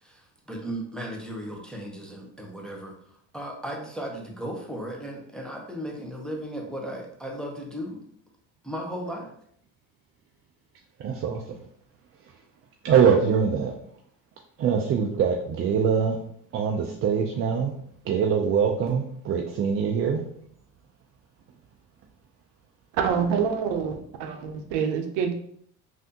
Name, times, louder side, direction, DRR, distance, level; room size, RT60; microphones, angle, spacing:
voice 1, 0.0-2.9 3.3-8.0 8.6-9.3, equal, ahead, -1 dB, 0.6 m, -36 dB
voice 2, 11.0-11.4 12.8-13.8 14.6-16.2 16.5-17.7 18.1-20.2, right 7 dB, 35° right, 1 dB, 0.4 m, -23 dB
voice 3, 22.9-25.3, right 7 dB, 70° right, 5 dB, 0.7 m, -26 dB
3.3 x 2.6 x 2.7 m, 0.66 s
supercardioid pair, 85°, 43 cm